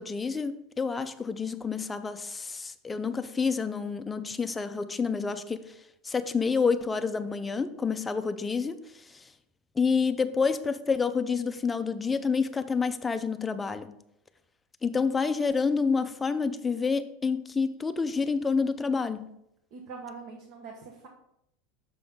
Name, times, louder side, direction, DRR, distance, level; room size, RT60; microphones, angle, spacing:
voice 1, 0.0-5.6 6.0-9.2 9.8-13.9 14.8-19.3, left 5 dB, 10° left, 9 dB, 0.4 m, -28 dB
voice 2, 19.7-21.1, right 4 dB, 55° right, 1 dB, 0.9 m, -43 dB
5.9 x 5.5 x 3.6 m, 0.78 s
supercardioid pair, 150°, 0 cm